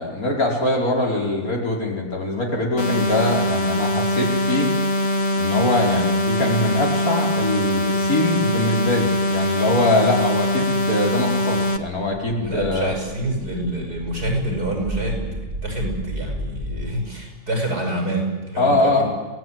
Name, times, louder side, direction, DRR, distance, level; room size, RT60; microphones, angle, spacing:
voice 1, 0.0-4.7 5.4-13.0 18.6-19.0, left 2 dB, 65° left, -1 dB, 5.7 m, -22 dB
sound 1, 2.8-11.8, left 1 dB, 45° left, 1.8 m, -22 dB
voice 2, 12.4-15.3 15.6-19.0, right 1 dB, 80° right, 1 dB, 8.3 m, -27 dB
sound 2, 12.6-16.8, right 1 dB, 40° right, 2.8 m, -33 dB
26.0 x 18.5 x 9.7 m, 1.3 s
omnidirectional pair, 1.7 m